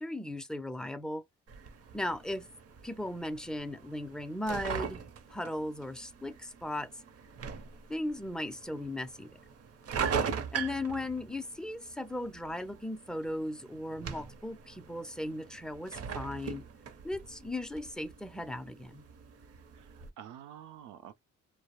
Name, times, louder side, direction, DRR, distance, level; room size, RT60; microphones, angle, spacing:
voice 1, 0.0-1.2 1.9-2.5 2.8-5.0 5.3-6.9 7.9-9.4 10.5-16.7 17.0-19.1, left 1 dB, ahead, 0.3 m, -37 dB
sound 1, 1.5-20.1, right 6 dB, 55° right, 0.7 m, -41 dB
voice 2, 19.7-21.2, right 10 dB, 90° right, 0.5 m, -49 dB
2.2 x 2.0 x 2.9 m
cardioid pair, 90°, 30 cm